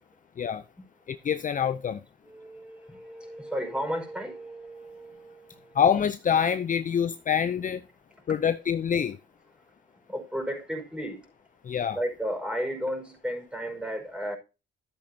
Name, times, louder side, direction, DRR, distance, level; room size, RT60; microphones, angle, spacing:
voice 1, 1.1-2.0 5.7-7.8 8.3-9.2 11.6-12.0, left 8 dB, 40° left, 0.6 m, -25 dB
voice 2, 2.3-5.5 10.1-11.2 11.9-14.4, equal, 5° right, 5.2 m, -33 dB
13.0 x 8.6 x 2.8 m
cardioid pair, 90°, 20 cm